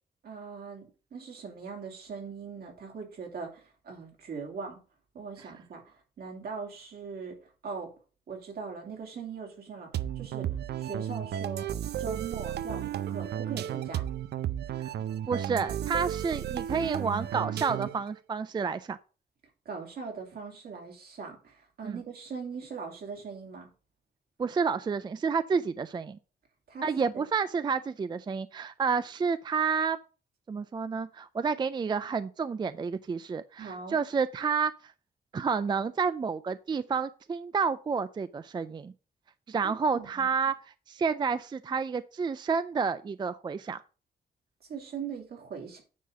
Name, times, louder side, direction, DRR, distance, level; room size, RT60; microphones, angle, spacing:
voice 1, 0.2-4.8 5.1-7.4 7.6-7.9 8.3-10.5 10.8-11.7 12.0-14.1 19.6-23.7 26.7-26.8 27.1-27.2 33.6-34.0 39.6-40.3 44.7-45.8, right 5 dB, 70° right, 3.0 m, -40 dB
sound 1, 9.9-18.1, right 10 dB, 85° right, 0.5 m, -33 dB
voice 2, 15.3-19.0 21.8-22.0 24.4-26.2 26.8-30.0 30.5-34.9 35.3-38.9 39.5-40.5 40.9-43.8, right 5 dB, 25° right, 0.3 m, -30 dB
9.3 x 4.0 x 6.3 m
wide cardioid pair, 135°, 17 cm